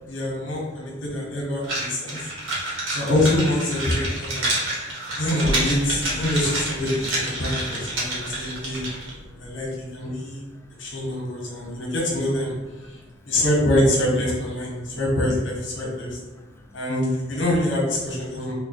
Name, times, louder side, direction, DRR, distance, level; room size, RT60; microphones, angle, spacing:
voice 1, 0.1-2.3 2.9-4.5 5.1-8.8 9.4-10.4 10.8-12.5 12.9-13.0 13.2-16.2 16.7-18.5, left 1 dB, 65° left, -2 dB, 1.2 m, -25 dB
sound 1, 1.6-9.1, right 1 dB, 85° right, 1.3 m, -28 dB
voice 2, 2.0-2.9 4.5-4.9 7.4-7.5 8.0-8.7 9.0-9.5 10.1-10.2 10.5-10.9 11.5-11.8 12.8-13.2 14.7-15.0 15.7-16.8, equal, 15° left, 1 dB, 0.4 m, -52 dB
sound 2, 5.4-10.1, equal, 45° right, 1.0 m, -37 dB
3.6 x 2.3 x 4.2 m, 1.2 s
head